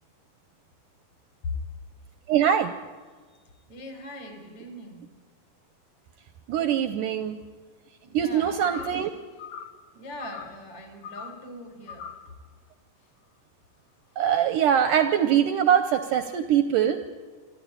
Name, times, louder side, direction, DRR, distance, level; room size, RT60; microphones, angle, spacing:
voice 1, 2.3-2.7 6.5-7.4 8.1-9.1 14.2-17.0, right 9 dB, 75° right, 9 dB, 2.0 m, -22 dB
voice 2, 3.7-5.0 8.0-9.3 9.9-12.0, equal, 50° left, 4 dB, 4.9 m, -42 dB
sound 1, 8.6-9.0 9.4-9.8 10.2-10.6 11.0-11.4 11.9-12.3, left 7 dB, 75° left, 1.4 m, -41 dB
25.5 x 12.5 x 9.6 m, 1.4 s
omnidirectional pair, 4.3 m